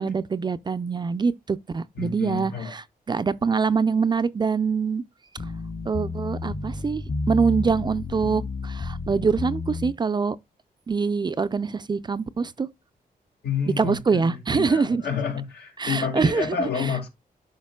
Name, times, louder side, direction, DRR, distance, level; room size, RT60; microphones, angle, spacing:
voice 1, 0.0-5.0 5.9-10.4 10.9-12.7 13.8-15.0 15.8-16.9, right 5 dB, 30° right, 0.4 m, -24 dB
voice 2, 2.0-2.7 13.4-17.1, left 6 dB, 85° left, 2.2 m, -29 dB
sound 1, 5.4-9.9, left 3 dB, 50° left, 2.0 m, -31 dB
12.0 x 4.9 x 2.3 m
wide cardioid pair, 140°, 16 cm